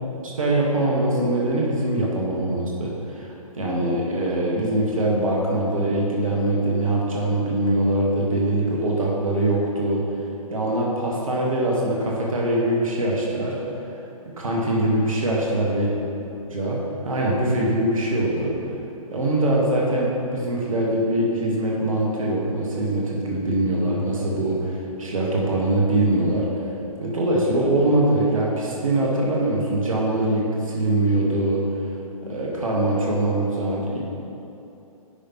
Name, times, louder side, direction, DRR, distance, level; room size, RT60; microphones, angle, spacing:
voice 1, 0.4-10.0 10.5-13.6 14.4-15.9 16.5-16.8 17.0-18.5 19.1-26.5 27.0-31.6 32.2-34.0, right 1 dB, 65° right, -3 dB, 1.4 m, -23 dB
9.8 x 5.1 x 2.9 m, 2.8 s
figure-of-eight pair, 125°, 19 cm